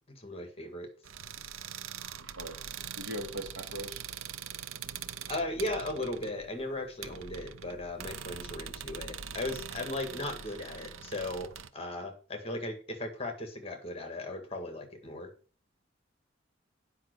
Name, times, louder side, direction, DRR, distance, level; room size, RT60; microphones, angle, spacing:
voice 1, 0.1-0.9 5.3-15.3, left 1 dB, 30° left, 6 dB, 1.8 m, -37 dB
sound 1, 1.0-11.7, right 8 dB, 85° right, 0.7 m, -43 dB
voice 2, 2.2-2.6 3.0-4.0, equal, 70° right, 3 dB, 2.6 m, -40 dB
9.1 x 5.6 x 6.6 m, 0.39 s
head